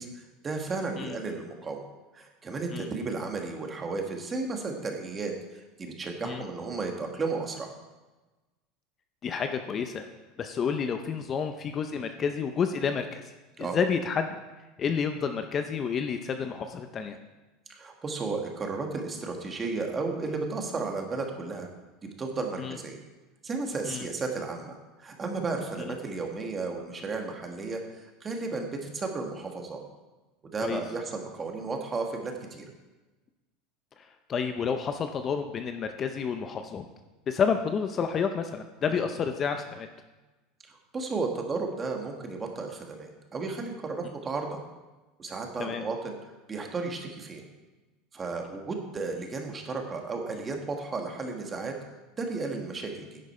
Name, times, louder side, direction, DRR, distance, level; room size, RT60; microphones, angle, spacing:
voice 1, 0.0-1.8 2.1-7.7 13.6-13.8 17.7-21.7 22.2-23.0 23.4-29.8 30.5-32.6 38.9-39.1 40.7-44.6 45.2-46.1 46.5-47.4 48.1-51.7 52.1-53.2, right 3 dB, 20° right, 3 dB, 1.5 m, -34 dB
voice 2, 9.2-10.1 10.4-13.3 13.6-14.4 14.8-17.2 22.6-22.8 23.8-24.1 30.6-30.8 34.0-34.1 34.3-36.8 37.3-39.9 45.6-45.8, left 6 dB, 30° left, 7 dB, 0.6 m, -30 dB
10.5 x 7.9 x 4.3 m, 1.2 s
supercardioid pair, 135°, 0 cm